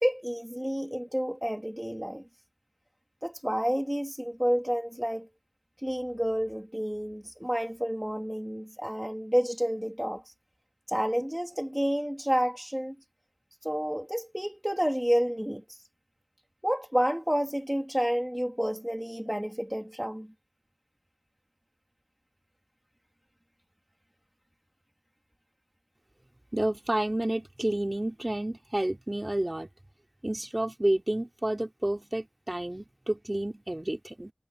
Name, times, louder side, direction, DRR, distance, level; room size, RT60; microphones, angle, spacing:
voice 1, 0.0-2.2 3.2-5.3 5.8-10.3 10.9-12.9 13.6-15.8 16.6-20.3, equal, 10° right, 2.2 m, -30 dB
voice 2, 26.5-29.7 30.2-34.3, right 1 dB, 30° right, 4.1 m, -30 dB
wide cardioid pair, 55°, 0 cm